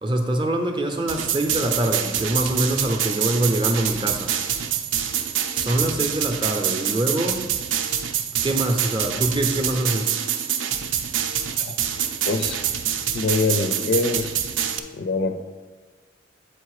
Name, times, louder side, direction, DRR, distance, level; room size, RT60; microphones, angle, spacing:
voice 1, 0.0-4.3 5.5-7.4 8.4-10.1, right 1 dB, 25° right, 4 dB, 0.6 m, -24 dB
sound 1, 1.1-14.8, right 9 dB, 70° right, 0.5 m, -26 dB
voice 2, 12.2-12.6 13.1-14.4 14.9-15.4, left 3 dB, 50° left, 8 dB, 0.4 m, -24 dB
7.7 x 4.2 x 4.8 m, 1.4 s
head